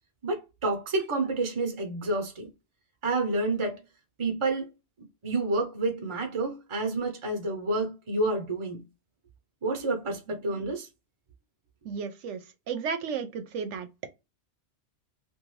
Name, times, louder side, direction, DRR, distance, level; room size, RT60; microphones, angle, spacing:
voice 1, 0.2-2.5 3.0-3.8 4.2-4.7 5.2-8.8 9.6-10.9, right 2 dB, 30° right, 0.7 m, -29 dB
voice 2, 11.8-12.4 12.7-13.9, right 6 dB, 75° right, 0.9 m, -33 dB
2.6 x 2.5 x 3.0 m
omnidirectional pair, 1.3 m